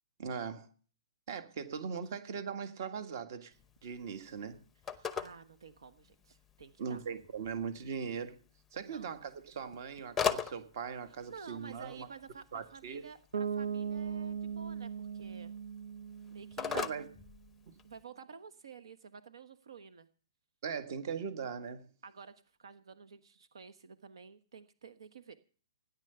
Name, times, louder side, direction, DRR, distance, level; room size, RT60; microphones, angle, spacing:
voice 1, 0.2-0.7 1.3-3.5 3.8-4.6 6.8-8.4 8.7-12.1 12.5-13.0 16.7-17.1 20.6-21.9, right 6 dB, 45° right, 1.7 m, -40 dB
Telephone, 3.5-18.0, left 7 dB, 5° left, 0.7 m, -42 dB
voice 2, 5.0-7.0 8.8-9.1 11.3-15.5 16.3-16.9 17.8-20.1 22.0-25.4, right 6 dB, 70° right, 1.3 m, -51 dB
Bass guitar, 13.3-17.2, right 7 dB, 90° right, 1.0 m, -39 dB
17.0 x 10.0 x 6.9 m
hypercardioid pair, 165°, 3 cm